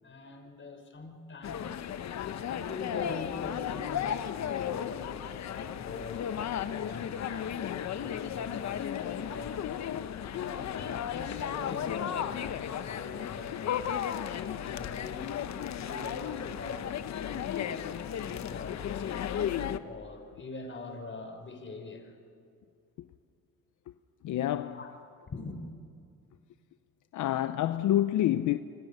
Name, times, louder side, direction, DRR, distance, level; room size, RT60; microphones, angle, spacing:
voice 1, 0.0-1.8 2.5-6.3 6.6-9.6 10.3-13.9 14.3-15.3 15.8-19.3 19.8-22.1 24.7-25.0 25.3-25.6, left 3 dB, 40° left, 4.6 m, -44 dB
sound 1, 1.4-19.8, left 9 dB, 65° left, 1.1 m, -34 dB
voice 2, 24.2-24.8 27.1-28.6, left 13 dB, 80° left, 0.8 m, -27 dB
28.0 x 25.0 x 6.7 m
cardioid pair, 90°, 30 cm